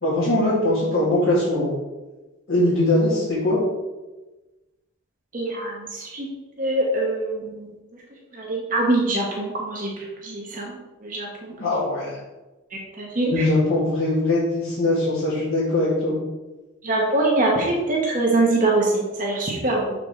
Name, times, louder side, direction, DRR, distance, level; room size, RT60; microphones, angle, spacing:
voice 1, 0.0-1.8 2.5-3.6 11.5-12.2 13.3-16.2, left 1 dB, 60° left, -10 dB, 2.2 m, -21 dB
voice 2, 5.3-6.3 6.6-7.7 8.3-9.9 10.2-10.8 11.0-11.5 12.7-13.5 16.8-19.9, right 2 dB, 40° right, -2 dB, 1.0 m, -23 dB
6.5 x 4.8 x 3.6 m, 1.1 s
head